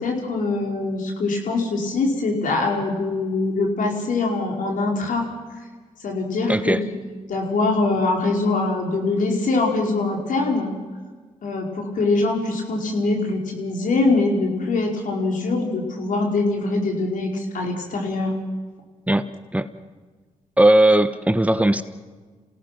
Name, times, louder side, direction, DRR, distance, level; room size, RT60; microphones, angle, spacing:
voice 1, 0.0-5.3 6.0-7.0 7.3-10.7 11.4-18.3, left 3 dB, 70° left, 0 dB, 5.2 m, -23 dB
voice 2, 6.5-6.8 19.1-19.2 19.5-19.7 20.6-21.8, right 1 dB, 10° right, 11 dB, 1.1 m, -17 dB
28.0 x 17.5 x 6.1 m, 1.4 s
supercardioid pair, 50°, 14 cm